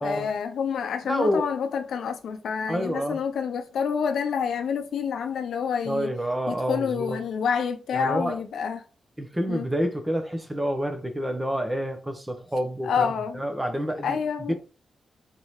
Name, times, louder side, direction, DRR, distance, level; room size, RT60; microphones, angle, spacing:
voice 1, 0.0-6.1 6.5-8.8 9.5-9.7 12.8-13.4 14.0-14.5, left 6 dB, 85° left, 0.7 m, -28 dB
voice 2, 1.1-1.5 2.7-3.2 5.9-7.2 7.9-8.4 9.2-14.2 14.5-14.6, equal, 10° right, 0.8 m, -28 dB
4.1 x 3.6 x 3.1 m
wide cardioid pair, 140°, 0 cm